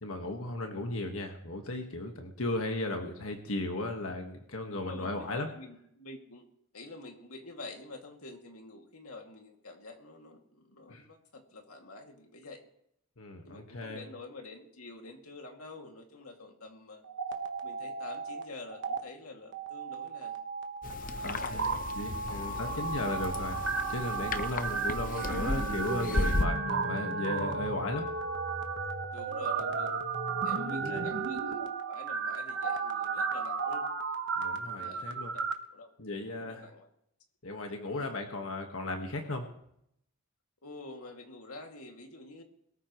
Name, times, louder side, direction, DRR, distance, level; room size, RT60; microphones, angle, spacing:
voice 1, 0.0-5.5 10.9-11.0 13.2-14.0 21.0-23.6 23.9-28.1 30.8-31.1 34.4-35.3 36.0-36.6 37.4-39.5, left 2 dB, 70° left, 4 dB, 1.6 m, -36 dB
voice 2, 4.7-6.5 6.7-12.6 13.4-17.0 17.6-20.4 21.1-21.8 22.1-23.4 24.6-24.8 29.1-30.0 30.4-33.9 34.6-36.9 37.9-38.1 40.6-42.4, left 2 dB, 90° left, 2 dB, 2.5 m, -48 dB
sound 1, 17.0-18.4 18.7-19.0 19.5-35.5, right 4 dB, 55° right, 1.3 m, -34 dB
sound 2, 20.8-26.5, left 2 dB, 40° left, 0.8 m, -35 dB
22.0 x 14.0 x 3.2 m, 0.74 s
head